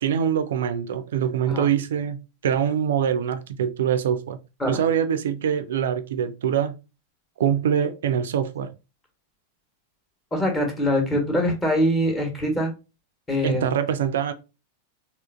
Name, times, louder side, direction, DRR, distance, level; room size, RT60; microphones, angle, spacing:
voice 1, 0.0-4.4 4.7-6.8 7.4-8.7 13.4-14.3, right 8 dB, 60° right, 0.4 m, -24 dB
voice 2, 10.3-12.7 13.3-13.7, equal, 15° left, 1.1 m, -23 dB
3.5 x 2.4 x 2.5 m
figure-of-eight pair, 90°, 0 cm